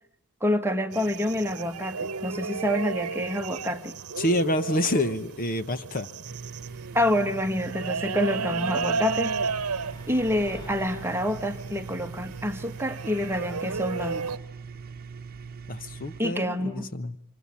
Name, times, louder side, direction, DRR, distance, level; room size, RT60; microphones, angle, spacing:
voice 1, 0.4-4.0 6.9-9.3 10.1-14.4 16.2-16.9, left 1 dB, 10° right, 1.4 m, -27 dB
sound 1, 0.9-14.4, right 5 dB, 90° right, 1.0 m, -34 dB
voice 2, 4.2-6.1 15.7-17.2, left 1 dB, 40° left, 1.0 m, -27 dB
sound 2, 6.2-16.2, right 5 dB, 45° right, 1.1 m, -42 dB
sound 3, 8.5-11.4, equal, 20° left, 1.6 m, -49 dB
26.0 x 25.5 x 8.4 m
head